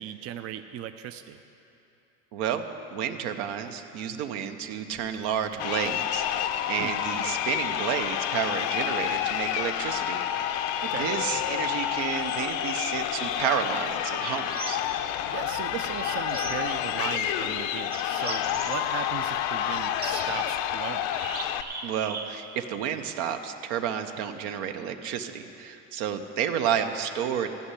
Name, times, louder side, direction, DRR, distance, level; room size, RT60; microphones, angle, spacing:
voice 1, 0.0-1.4 6.8-7.0 10.8-11.1 15.3-21.1, right 10 dB, 40° right, 9 dB, 0.5 m, -37 dB
voice 2, 2.3-10.2 11.0-14.8 21.8-27.5, right 8 dB, 75° right, 7 dB, 0.9 m, -31 dB
Crowd, 5.5-21.6, left 10 dB, 75° left, 0.7 m, -29 dB
sound 1, 10.3-10.6 11.2-12.5 14.1-15.0 15.9-17.0 17.9-18.8 20.0-20.5 21.1-22.5, right 4 dB, 25° right, 1.0 m, -40 dB
15.0 x 5.7 x 9.8 m, 2.9 s
supercardioid pair, 105°, 35 cm